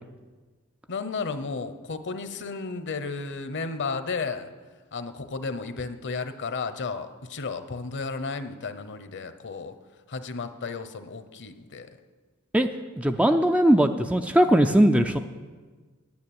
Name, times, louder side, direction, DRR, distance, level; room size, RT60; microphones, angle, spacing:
voice 1, 0.9-4.5 4.9-9.7 10.1-11.9, left 4 dB, 55° left, 10 dB, 0.9 m, -33 dB
voice 2, 13.0-15.2, right 1 dB, 5° right, 7 dB, 0.4 m, -20 dB
9.6 x 9.2 x 8.7 m, 1.4 s
head